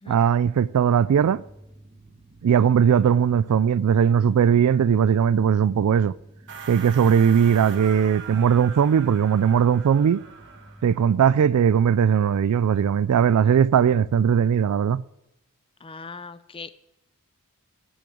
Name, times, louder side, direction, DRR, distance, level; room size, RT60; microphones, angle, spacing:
voice 1, 0.1-1.4 2.4-6.1 6.7-10.2 10.8-15.0, right 8 dB, 80° right, 0.3 m, -19 dB
sound 1, 0.9-14.2, right 1 dB, 30° right, 2.1 m, -50 dB
sound 2, 6.5-11.0, right 6 dB, 55° right, 1.4 m, -41 dB
voice 2, 15.8-16.7, left 4 dB, 25° left, 0.5 m, -39 dB
10.5 x 6.4 x 7.7 m
head